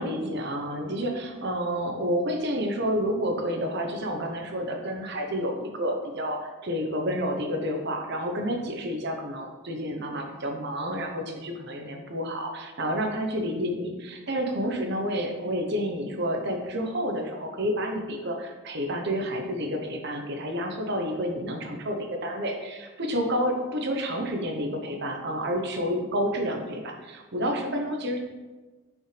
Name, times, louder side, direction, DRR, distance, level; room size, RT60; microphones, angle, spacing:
voice 1, 0.0-28.2, equal, 50° right, 2 dB, 1.0 m, -29 dB
6.4 x 5.4 x 3.3 m, 1.2 s
head